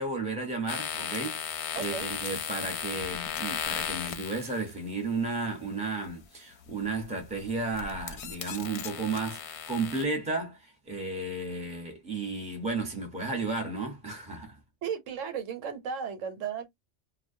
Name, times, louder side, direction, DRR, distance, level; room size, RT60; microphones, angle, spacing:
voice 1, 0.0-14.6, right 3 dB, 5° right, 0.7 m, -33 dB
sound 1, 0.7-4.7 6.7-7.0 7.5-10.1, left 8 dB, 70° left, 0.8 m, -36 dB
voice 2, 1.7-2.1 14.8-16.7, right 7 dB, 85° right, 1.1 m, -35 dB
2.3 x 2.1 x 2.6 m
omnidirectional pair, 1.3 m